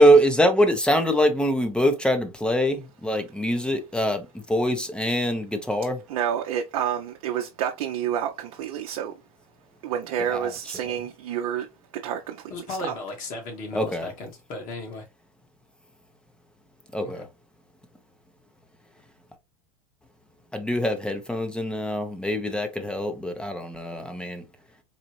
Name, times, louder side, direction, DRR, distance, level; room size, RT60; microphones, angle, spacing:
voice 1, 0.0-6.0 10.3-11.0 13.7-14.1 16.9-17.3 20.5-24.5, equal, 5° left, 0.8 m, -23 dB
voice 2, 6.1-9.1 9.8-11.7 11.9-12.9, right 9 dB, 70° right, 0.7 m, -29 dB
voice 3, 12.5-15.0 17.0-17.1, left 2 dB, 45° left, 1.9 m, -35 dB
4.1 x 2.5 x 3.0 m
hypercardioid pair, 100°, 18 cm